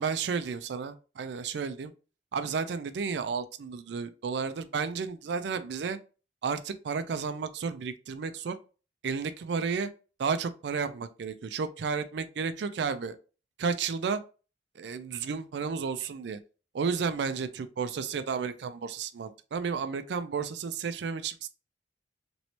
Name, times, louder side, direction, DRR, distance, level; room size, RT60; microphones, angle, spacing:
voice 1, 0.0-1.9 2.3-6.0 6.4-8.5 9.0-9.9 10.2-13.2 13.6-14.2 14.8-16.4 16.7-21.5, right 5 dB, 70° right, 0.4 m, -32 dB
3.0 x 3.0 x 2.8 m
head